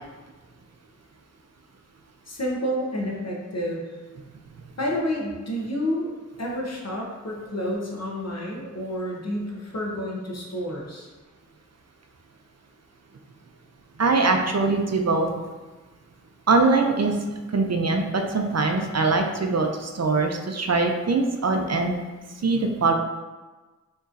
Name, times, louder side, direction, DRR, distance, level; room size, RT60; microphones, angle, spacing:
voice 1, 2.3-3.9 4.8-6.1 6.4-11.1, equal, 55° left, -2 dB, 0.9 m, -29 dB
voice 2, 14.0-15.3 16.5-17.2 17.5-22.0 22.4-22.9, right 3 dB, 55° right, 4 dB, 0.5 m, -22 dB
4.9 x 3.0 x 2.5 m, 1.3 s
wide cardioid pair, 55°, 32 cm